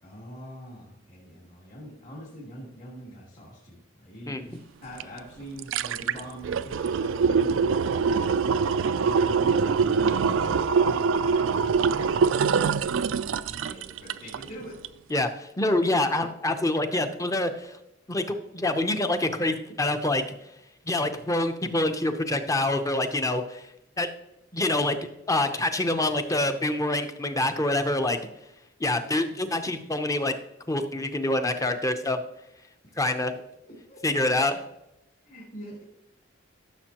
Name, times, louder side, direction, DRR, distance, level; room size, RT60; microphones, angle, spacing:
voice 1, 0.0-8.4 9.0-14.8 32.8-32.9 33.7-34.3 35.2-35.8, equal, 45° left, -6 dB, 2.7 m, -44 dB
voice 2, 4.3-4.6 15.1-17.8 18.1-20.2 20.9-23.7 24.0-24.1 24.5-28.2 28.8-30.3 30.7-32.2 33.0-33.3 34.0-34.6, left 2 dB, 15° left, 7 dB, 0.7 m, -26 dB
sound 1, 5.0-5.1 5.4-14.5 14.8-14.9, right 5 dB, 75° right, 0.4 m, -24 dB
14.5 x 6.9 x 3.0 m, 0.88 s
head